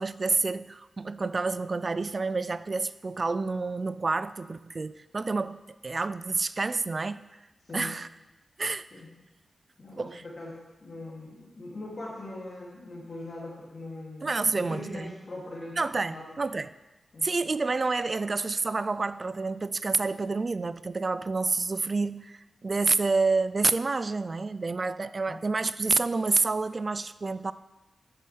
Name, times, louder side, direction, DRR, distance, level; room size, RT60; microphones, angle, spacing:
voice 1, 0.0-7.2 7.7-8.1 8.6-8.8 10.0-10.2 14.2-15.1 15.8-16.7 17.2-27.5, right 3 dB, 45° right, 15 dB, 0.3 m, -28 dB
voice 2, 9.8-15.8 16.1-16.3 17.1-17.3 25.3-25.4, left 2 dB, 55° left, -4 dB, 2.5 m, -41 dB
9.7 x 6.8 x 3.3 m, 1.1 s
cardioid pair, 50°, 0 cm